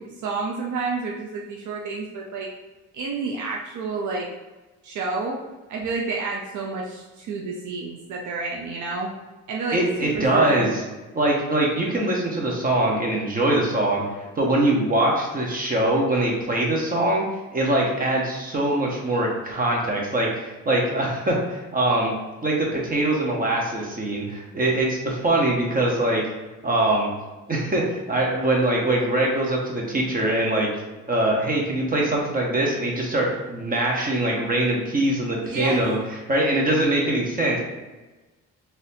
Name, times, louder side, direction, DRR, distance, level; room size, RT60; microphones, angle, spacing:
voice 1, 0.0-2.5 2.9-4.3 4.8-5.4 5.7-9.1 9.5-10.7 35.4-35.8, right 3 dB, 75° right, -1 dB, 0.6 m, -29 dB
voice 2, 9.7-10.8 11.1-17.2 17.5-22.1 22.4-26.2 26.6-27.1 27.5-30.7 31.1-37.6, right 1 dB, 30° right, -2 dB, 1.1 m, -23 dB
4.0 x 2.7 x 2.7 m, 1.2 s
cardioid pair, 90°, 30 cm